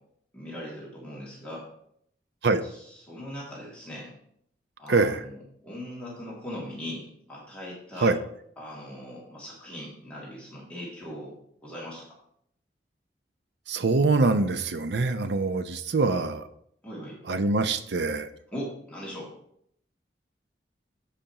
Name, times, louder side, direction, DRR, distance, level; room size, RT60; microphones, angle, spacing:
voice 1, 0.3-1.7 3.1-4.2 4.8-8.1 8.6-11.3 11.6-12.1 16.1-16.2 16.8-17.2 18.5-19.3, equal, 5° left, -7 dB, 2.3 m, -39 dB
voice 2, 4.9-5.2 8.0-8.2 13.7-16.5 17.3-18.3, right 3 dB, 75° right, 10 dB, 0.6 m, -24 dB
14.0 x 5.0 x 2.9 m, 0.69 s
head